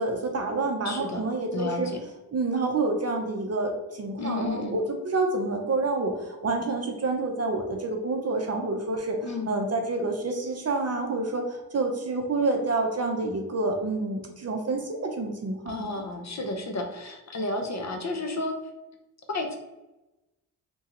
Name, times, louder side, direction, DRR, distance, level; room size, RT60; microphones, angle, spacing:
voice 1, 0.0-1.9 2.3-3.7 4.0-9.2 9.5-16.0, right 3 dB, 35° right, 3 dB, 0.6 m, -28 dB
voice 2, 0.8-1.2 1.5-2.0 4.2-4.8 9.2-9.5 15.7-18.5 19.3-19.6, left 2 dB, 40° left, 3 dB, 0.7 m, -32 dB
3.0 x 2.3 x 2.9 m, 1.0 s
supercardioid pair, 40°, 43 cm